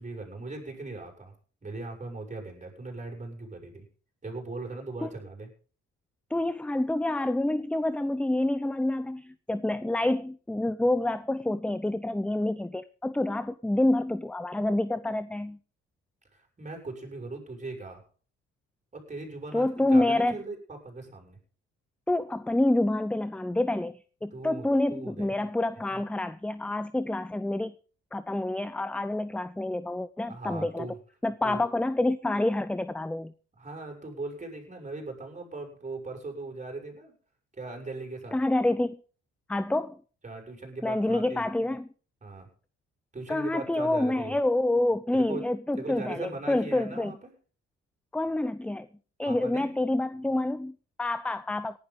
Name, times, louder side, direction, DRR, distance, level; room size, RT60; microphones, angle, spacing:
voice 1, 0.0-1.3 1.6-3.8 4.2-5.5 16.3-18.0 18.9-21.4 24.3-25.3 25.9-26.0 30.3-31.0 31.4-31.7 33.6-37.1 37.5-38.4 40.2-41.5 42.2-42.5 43.1-44.4 45.1-45.4 45.7-47.3 49.2-49.7, right 3 dB, 25° right, 2 dB, 6.8 m, -39 dB
voice 2, 6.3-15.6 19.5-20.4 22.1-27.7 28.1-30.9 31.2-33.3 38.3-39.0 39.5-40.0 40.8-41.9 43.3-47.1 48.1-48.9 49.2-51.8, left 1 dB, 5° left, 15 dB, 0.6 m, -27 dB
18.5 x 11.5 x 3.8 m, 0.40 s
cardioid pair, 90°, 30 cm